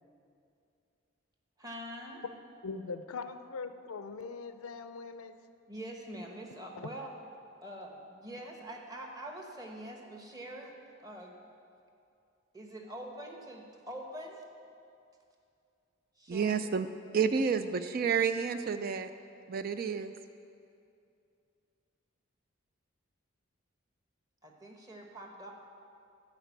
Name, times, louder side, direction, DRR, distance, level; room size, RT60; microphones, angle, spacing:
voice 1, 1.6-2.2 5.7-7.1 7.6-10.7 11.0-11.4 12.5-14.4 16.2-16.8 24.4-25.5, right 1 dB, 15° right, 1.0 m, -44 dB
voice 2, 2.6-5.4 6.8-6.9, left 4 dB, 90° left, 0.5 m, -41 dB
voice 3, 16.3-16.9 17.1-19.1 19.5-20.1, right 6 dB, 45° right, 0.3 m, -30 dB
11.5 x 5.1 x 8.1 m
head